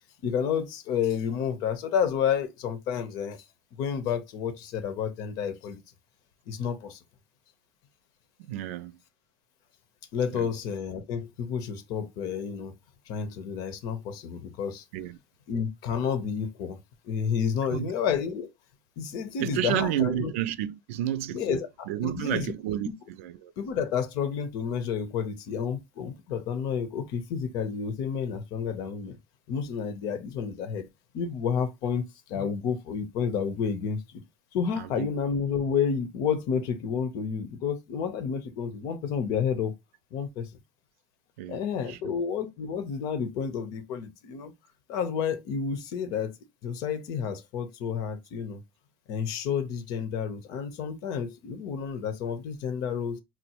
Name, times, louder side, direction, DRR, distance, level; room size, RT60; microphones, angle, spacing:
voice 1, 0.2-3.4 3.8-5.8 6.5-7.0 10.1-12.7 13.1-14.8 15.5-16.8 17.0-18.5 19.0-20.3 21.3-22.5 23.6-29.2 29.5-30.9 31.1-32.0 32.3-34.2 34.5-39.7 40.1-40.5 41.5-44.5 44.9-46.3 46.6-48.6 49.1-53.2, left 7 dB, 65° left, 0.7 m, -30 dB
voice 2, 8.4-9.0 10.3-10.5 14.9-15.2 17.7-17.9 19.4-21.6 21.9-23.5 34.8-35.1 41.4-41.6 41.9-42.1, right 12 dB, 80° right, 0.4 m, -31 dB
4.3 x 2.1 x 2.9 m
supercardioid pair, 95°, 7 cm